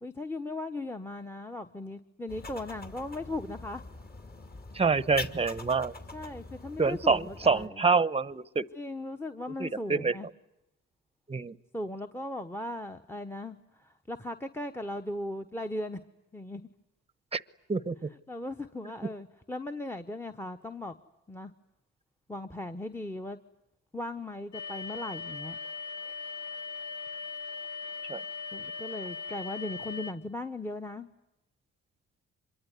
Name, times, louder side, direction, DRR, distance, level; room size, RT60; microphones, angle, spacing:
voice 1, 0.0-3.8 6.1-7.8 8.7-10.3 11.7-16.0 16.3-16.7 18.3-21.0 21.3-21.5 22.3-23.4 23.9-25.6 28.5-31.1, left 1 dB, 10° left, 10 dB, 1.2 m, -38 dB
sound 1, 2.3-7.7, left 3 dB, 30° left, 2.7 m, -43 dB
voice 2, 4.7-5.9 6.8-8.7 9.6-10.2 11.3-11.6 17.3-17.4 17.7-18.1 28.1-28.2, right 4 dB, 20° right, 18 dB, 1.0 m, -27 dB
sound 2, 24.5-30.1, left 4 dB, 80° left, 1.6 m, -39 dB
26.0 x 23.0 x 9.7 m, 0.90 s
cardioid pair, 90°, 30 cm